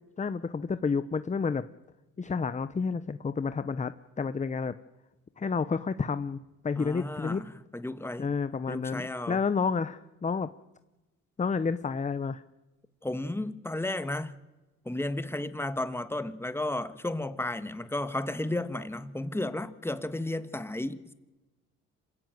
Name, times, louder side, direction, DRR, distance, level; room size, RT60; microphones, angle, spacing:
voice 1, 0.2-1.6 2.2-4.8 5.4-6.4 6.6-7.4 8.2-10.5 11.4-12.4, left 5 dB, 25° left, 0.9 m, -30 dB
voice 2, 6.8-8.3 8.7-9.4 13.0-14.3 14.8-21.1, left 1 dB, 10° left, 1.6 m, -33 dB
26.5 x 16.0 x 9.3 m
cardioid pair, 90°, 30 cm